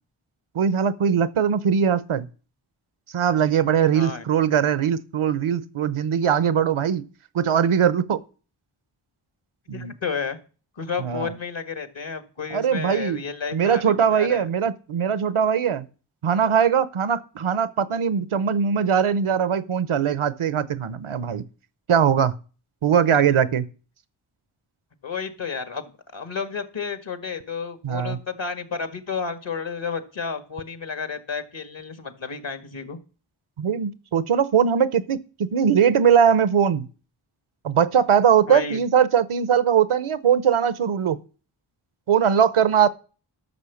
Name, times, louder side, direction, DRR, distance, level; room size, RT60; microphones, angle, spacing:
voice 1, 0.5-2.3 3.1-7.0 7.3-8.2 9.7-9.9 11.0-11.3 12.5-13.2 13.5-15.9 16.2-21.4 21.9-22.3 22.8-23.7 27.8-28.2 33.6-36.9 37.6-41.2 42.1-42.9, right 8 dB, 85° right, 0.8 m, -21 dB
voice 2, 3.9-4.2 9.7-10.4 10.7-14.5 23.1-23.2 25.0-33.0 38.5-38.8, left 5 dB, 65° left, 1.8 m, -31 dB
12.0 x 6.3 x 7.1 m
cardioid pair, 45°, 48 cm